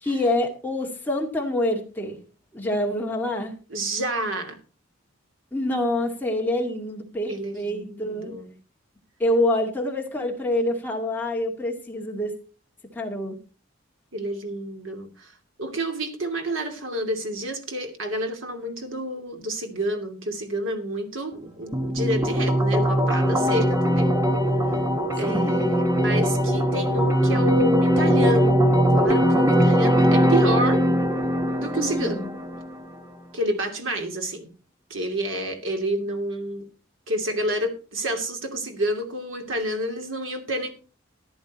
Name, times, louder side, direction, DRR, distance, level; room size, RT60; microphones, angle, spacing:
voice 1, 0.0-2.2 2.5-3.5 5.5-8.3 9.2-12.3 12.9-13.4 25.2-25.6 31.7-32.3, left 1 dB, 10° left, 0 dB, 2.1 m, -26 dB
voice 2, 3.7-4.6 7.3-8.5 14.1-15.3 15.6-24.2 25.1-30.8 31.6-32.3 33.3-34.5 34.9-36.7 37.1-40.7, right 1 dB, 70° right, 5 dB, 2.7 m, -29 dB
sound 1, 21.7-32.7, equal, 15° right, 1.4 m, -21 dB
14.0 x 10.5 x 4.2 m, 0.36 s
head